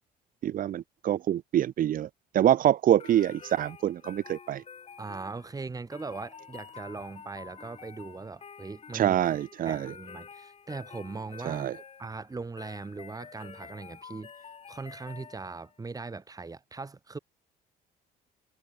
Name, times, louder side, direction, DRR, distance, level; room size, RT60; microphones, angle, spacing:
voice 1, 0.4-4.6 8.9-9.9 11.4-11.8, right 11 dB, 55° right, 1.2 m, -26 dB
sound 1, 3.0-15.8, left 6 dB, 35° left, 4.8 m, -49 dB
voice 2, 5.0-9.2 9.6-11.7 12.0-17.2, right 3 dB, 20° right, 7.5 m, -40 dB
cardioid pair, 110°, 17 cm